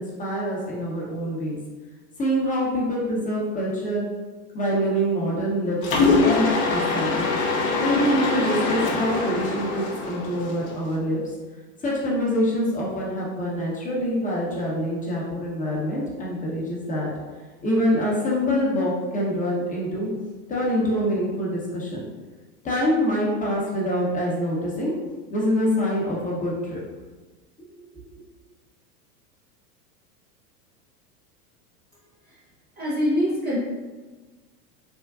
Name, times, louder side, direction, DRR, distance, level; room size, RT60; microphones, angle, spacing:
voice 1, 0.0-1.6 2.2-4.1 4.5-7.4 7.8-11.2 11.8-17.1 17.6-20.1 20.5-22.0 22.6-24.9 25.3-26.8 27.6-28.1, equal, 15° left, -4 dB, 0.7 m, -25 dB
Mechanisms, 5.8-10.9, left 3 dB, 60° left, 0.7 m, -23 dB
voice 2, 32.8-33.6, equal, 20° right, -8 dB, 0.4 m, -23 dB
3.5 x 2.2 x 2.3 m, 1.3 s
hypercardioid pair, 105°, 47 cm